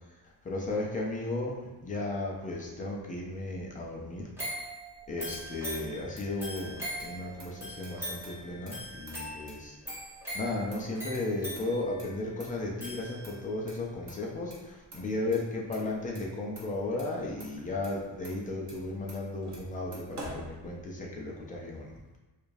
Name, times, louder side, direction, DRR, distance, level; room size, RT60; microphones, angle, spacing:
voice 1, 0.4-4.3 5.1-9.8 10.3-22.0, left 2 dB, 20° left, -2 dB, 0.4 m, -35 dB
sound 1, 4.4-13.6 14.1-14.2, equal, 5° right, 0.9 m, -41 dB
Motor vehicle (road), 4.9-21.2, right 1 dB, 45° right, 0.9 m, -50 dB
4.7 x 2.4 x 2.6 m, 1.1 s
wide cardioid pair, 180°, 42 cm